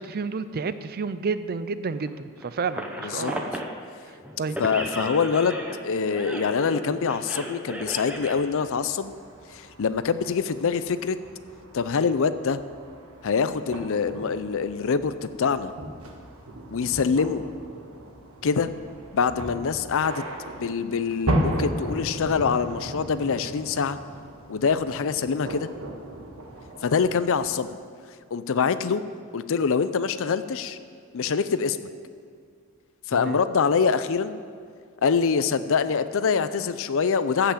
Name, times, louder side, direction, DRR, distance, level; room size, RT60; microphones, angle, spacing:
voice 1, 0.0-3.5 4.1-4.6 33.1-33.4, right 4 dB, 45° right, 13 dB, 0.4 m, -31 dB
sound 1, 2.0-3.8 4.2-8.3, equal, 5° right, 1.0 m, -35 dB
voice 2, 3.0-3.3 4.6-9.1 9.5-11.2 11.7-12.6 13.2-15.7 16.7-17.5 18.4-18.7 19.1-20.2 20.6-24.0 24.5-25.7 26.8-27.8 28.3-29.0 29.3-30.8 31.1-31.8 33.1-34.4 35.0-37.5, left 5 dB, 65° left, 13 dB, 0.5 m, -24 dB
sound 2, 7.8-27.4, right 1 dB, 70° right, 1.5 m, -36 dB
15.0 x 5.9 x 7.3 m, 2.2 s
head